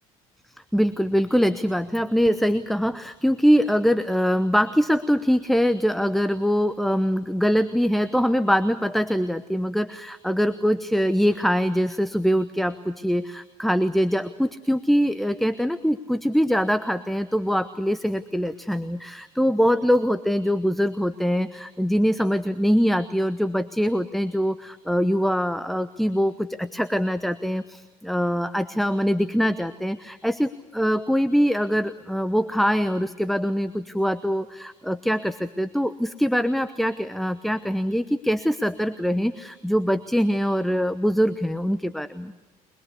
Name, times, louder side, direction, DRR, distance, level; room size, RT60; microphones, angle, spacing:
voice 1, 0.7-42.3, equal, ahead, 13 dB, 1.0 m, -23 dB
24.0 x 21.5 x 8.3 m, 1.2 s
hypercardioid pair, 65°, 19 cm